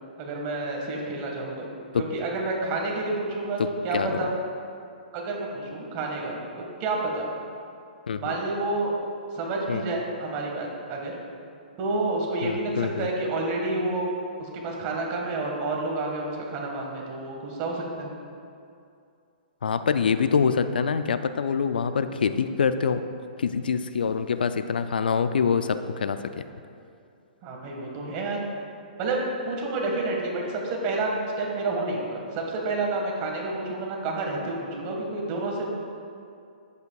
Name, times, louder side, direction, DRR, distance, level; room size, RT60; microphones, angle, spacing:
voice 1, 0.2-1.7 2.0-3.6 3.8-4.3 5.1-6.4 6.8-7.3 8.2-8.9 9.3-11.1 11.8-12.7 13.0-14.1 14.4-18.1 27.4-28.4 29.0-29.2 29.4-31.1 31.4-35.7, right 2 dB, 35° right, -1 dB, 1.7 m, -29 dB
voice 2, 3.6-4.2 8.1-8.3 9.7-9.8 12.4-13.1 19.6-23.0 23.4-26.4, left 6 dB, 85° left, 11 dB, 0.4 m, -25 dB
10.5 x 7.9 x 2.4 m, 2.5 s
hypercardioid pair, 135°, 5 cm